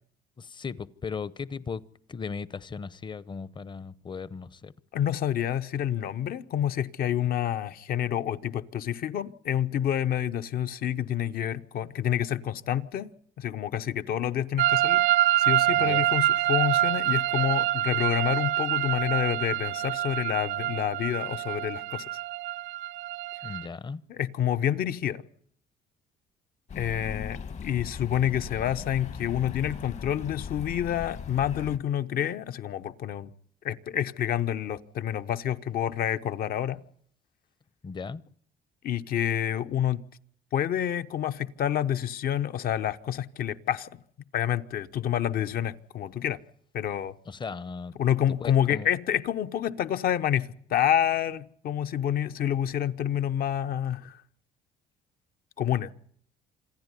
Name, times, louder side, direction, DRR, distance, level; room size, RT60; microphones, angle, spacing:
voice 1, 0.4-1.8 2.1-4.7 15.8-16.1 23.4-24.0 37.8-38.2 47.3-47.9 48.4-48.9, left 5 dB, 25° left, 0.8 m, -37 dB
voice 2, 4.9-15.0 15.4-22.0 24.1-25.2 26.7-33.3 33.6-36.8 38.8-40.0 40.5-43.9 44.3-46.4 46.7-47.1 48.0-54.2 55.6-55.9, left 10 dB, 60° left, 1.0 m, -28 dB
sound 1, 14.6-23.7, right 14 dB, 75° right, 0.9 m, -26 dB
sound 2, 26.7-31.8, left 6 dB, 45° left, 1.2 m, -39 dB
26.5 x 10.5 x 9.8 m
cardioid pair, 110°, 17 cm